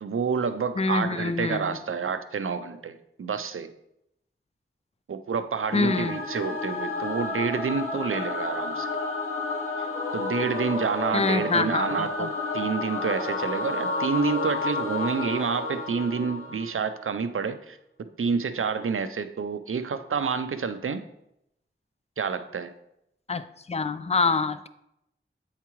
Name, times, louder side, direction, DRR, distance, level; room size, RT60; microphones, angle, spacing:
voice 1, 0.0-3.7 5.1-8.9 10.1-21.0 22.2-22.7, right 5 dB, 80° right, 10 dB, 0.5 m, -29 dB
voice 2, 0.8-1.8 5.7-6.2 11.1-12.3 23.3-24.7, left 4 dB, 30° left, 13 dB, 0.4 m, -26 dB
Singing / Musical instrument, 5.7-16.9, left 3 dB, 80° left, 1.0 m, -31 dB
8.1 x 4.8 x 3.0 m, 0.81 s
wide cardioid pair, 50°, 21 cm